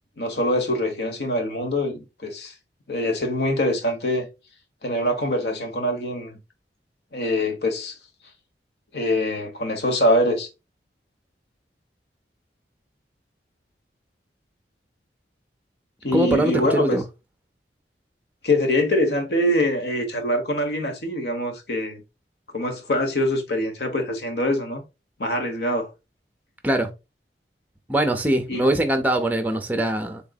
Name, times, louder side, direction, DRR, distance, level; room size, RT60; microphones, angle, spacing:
voice 1, 0.2-2.5 2.9-4.3 4.8-6.4 7.1-8.0 8.9-10.5 16.0-17.0 18.4-22.0 22.5-24.8 25.2-25.9 28.5-28.7, left 1 dB, 70° left, 1.1 m, -24 dB
voice 2, 16.1-17.0 26.6-26.9 27.9-30.2, right 1 dB, 10° right, 0.6 m, -22 dB
3.8 x 3.6 x 2.3 m
head